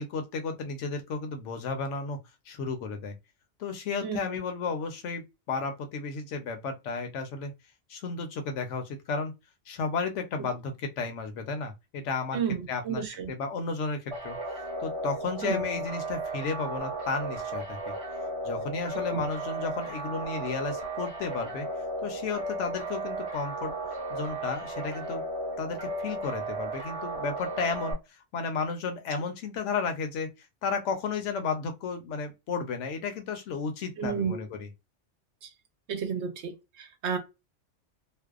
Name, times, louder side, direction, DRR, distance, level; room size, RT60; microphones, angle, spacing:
voice 1, 0.0-2.2 2.5-3.1 3.6-7.5 7.9-9.3 9.7-12.4 12.7-14.4 14.8-17.9 18.4-21.7 22.0-23.8 24.1-25.2 25.6-28.0 28.3-30.3 30.6-34.7, left 4 dB, 75° left, 0.9 m, -33 dB
voice 2, 4.0-4.4 12.3-13.3 15.4-15.6 19.1-19.3 34.0-34.4 35.4-35.5 35.9-37.2, right 7 dB, 70° right, 0.9 m, -32 dB
sound 1, 14.1-27.9, right 1 dB, 30° right, 0.9 m, -35 dB
2.5 x 2.0 x 2.3 m
omnidirectional pair, 1.2 m